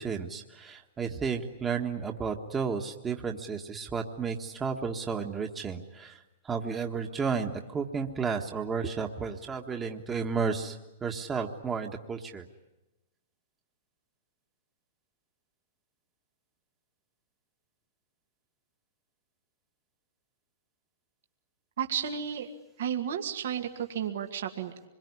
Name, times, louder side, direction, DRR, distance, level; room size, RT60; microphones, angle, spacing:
voice 1, 0.0-12.4, right 5 dB, 20° right, 2 dB, 1.6 m, -32 dB
voice 2, 21.8-22.5 22.8-24.7, right 8 dB, 70° right, 4 dB, 2.2 m, -32 dB
25.5 x 22.5 x 9.8 m, 0.99 s
hypercardioid pair, 120°, 0 cm